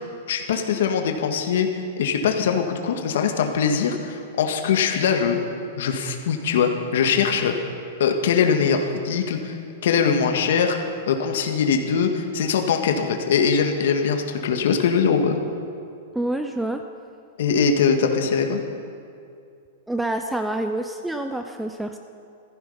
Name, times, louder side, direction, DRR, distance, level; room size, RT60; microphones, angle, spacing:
voice 1, 0.3-5.4 5.8-7.5 8.0-9.6 9.8-10.8 11.1-15.4 17.4-18.6, left 6 dB, 65° left, 4 dB, 1.6 m, -22 dB
voice 2, 16.1-16.8 19.9-22.0, right 1 dB, 5° right, 6 dB, 0.4 m, -27 dB
16.0 x 14.5 x 5.6 m, 2.4 s
supercardioid pair, 170°, 0 cm